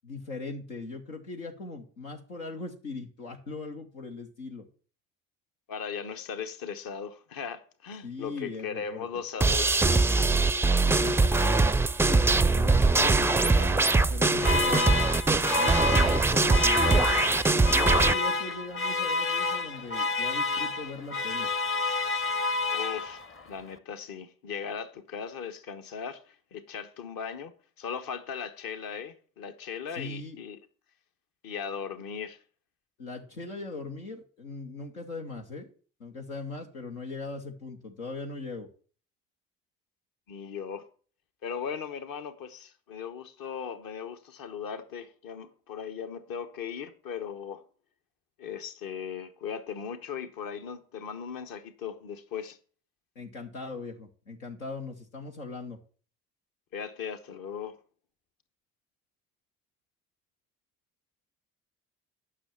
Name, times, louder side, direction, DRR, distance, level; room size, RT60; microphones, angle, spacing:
voice 1, 0.0-4.7 8.0-9.1 10.9-11.7 12.1-15.0 15.6-17.3 17.7-21.5 29.9-30.4 33.0-35.7 36.0-38.7 53.2-55.8, left 3 dB, 85° left, 1.0 m, -40 dB
voice 2, 5.7-10.1 22.7-27.5 27.8-30.6 31.4-32.4 40.3-40.9 41.4-47.6 48.4-52.6 56.7-57.8, left 7 dB, 55° left, 1.2 m, -38 dB
sound 1, 9.4-18.1, right 3 dB, 5° right, 0.3 m, -22 dB
sound 2, 14.4-23.4, left 3 dB, 30° left, 0.9 m, -29 dB
8.8 x 6.0 x 7.0 m
figure-of-eight pair, 45°, 41 cm